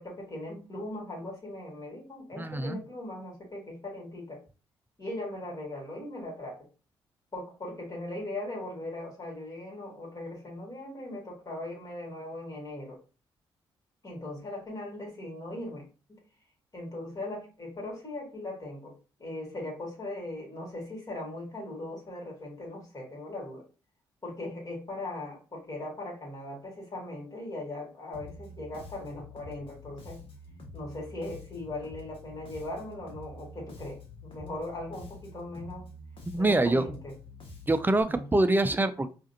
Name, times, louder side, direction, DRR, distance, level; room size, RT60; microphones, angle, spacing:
voice 1, 0.0-4.4 5.0-6.7 7.3-13.0 14.0-16.2 16.7-18.9 19.2-23.6 24.2-30.2 30.7-35.9 36.4-37.1 38.0-38.2, left 1 dB, 30° left, -2 dB, 2.1 m, -39 dB
voice 2, 2.4-2.8 36.3-36.8 37.7-39.1, right 2 dB, 15° right, 10 dB, 0.6 m, -25 dB
Bass guitar, 28.1-38.0, left 2 dB, 50° left, 1.4 m, -47 dB
4.8 x 2.6 x 2.8 m, 0.34 s
hypercardioid pair, 45°, 12 cm